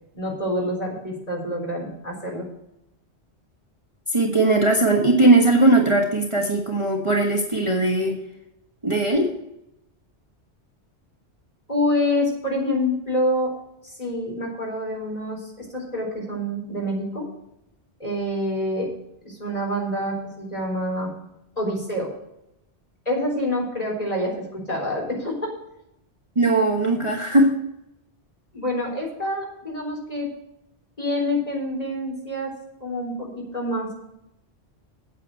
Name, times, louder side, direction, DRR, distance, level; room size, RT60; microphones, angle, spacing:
voice 1, 0.1-2.4 11.7-13.5 13.8-17.3 18.0-18.9 19.2-21.1 21.6-22.1 23.1-25.5 28.5-30.3 31.0-32.5 32.8-33.9, left 1 dB, 35° left, -1 dB, 4.1 m, -27 dB
voice 2, 4.1-8.2 8.8-9.3 26.3-27.5, right 2 dB, 25° right, 0 dB, 1.3 m, -19 dB
8.9 x 8.8 x 6.3 m, 0.83 s
omnidirectional pair, 1.2 m